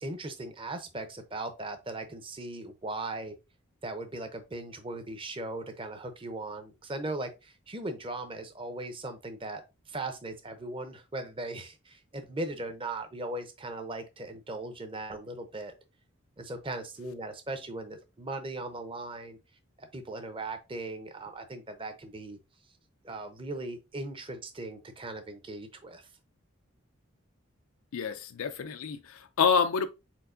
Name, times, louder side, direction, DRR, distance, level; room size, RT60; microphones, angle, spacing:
voice 1, 0.0-3.3 3.8-9.6 9.9-15.7 16.4-19.4 19.8-22.4 23.0-26.1, right 2 dB, 25° right, 0.7 m, -38 dB
voice 2, 27.9-29.9, left 6 dB, 85° left, 0.4 m, -27 dB
4.5 x 4.4 x 2.6 m
head